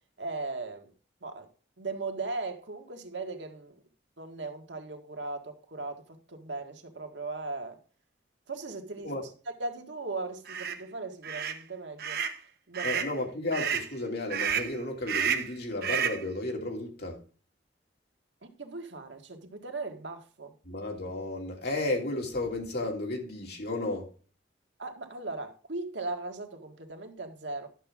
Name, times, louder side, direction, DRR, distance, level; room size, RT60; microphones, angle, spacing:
voice 1, 0.2-0.9 1.2-1.5 1.8-3.8 4.2-7.8 8.5-9.3 9.6-12.2 12.7-13.0 18.4-20.5 24.8-27.7, right 3 dB, 85° right, 1.7 m, -38 dB
sound 1, 10.5-10.8 11.2-11.6 12.0-12.4 12.7-13.1 13.5-13.9 14.3-14.7 15.1-15.5 15.8-16.2, right 8 dB, 60° right, 1.3 m, -30 dB
voice 2, 12.8-17.2 20.6-24.1, left 2 dB, 65° left, 2.9 m, -33 dB
11.5 x 7.3 x 3.6 m
head